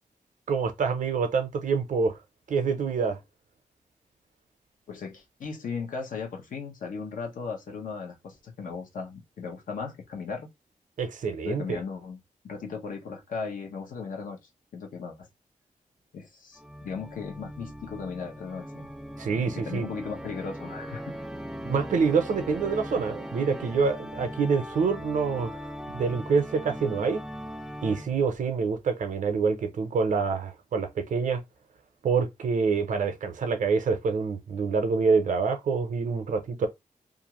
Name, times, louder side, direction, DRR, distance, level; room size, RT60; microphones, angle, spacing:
voice 1, 0.5-2.2 2.5-3.2 11.0-11.8 19.2-19.9 21.6-27.2 27.8-31.4 32.0-36.7, right 5 dB, 70° right, 0.6 m, -26 dB
voice 2, 4.9-10.5 11.4-14.4 14.7-15.3 16.1-18.9 19.5-21.2, left 5 dB, 85° left, 0.8 m, -37 dB
Organ, 16.6-28.4, equal, 5° right, 0.3 m, -39 dB
2.5 x 2.4 x 2.9 m
cardioid pair, 85°, 13 cm